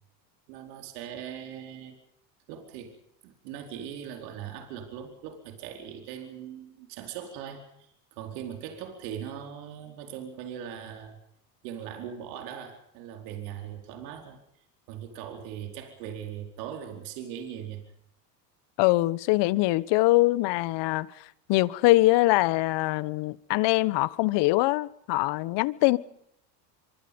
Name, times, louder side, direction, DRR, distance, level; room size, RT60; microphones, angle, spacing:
voice 1, 0.5-2.0 2.5-3.0 3.2-11.2 11.6-14.4 14.9-17.8, right 9 dB, 75° right, 4.6 m, -40 dB
voice 2, 18.8-26.0, left 20 dB, 60° left, 1.4 m, -23 dB
25.5 x 24.0 x 5.4 m
supercardioid pair, 105°, 49 cm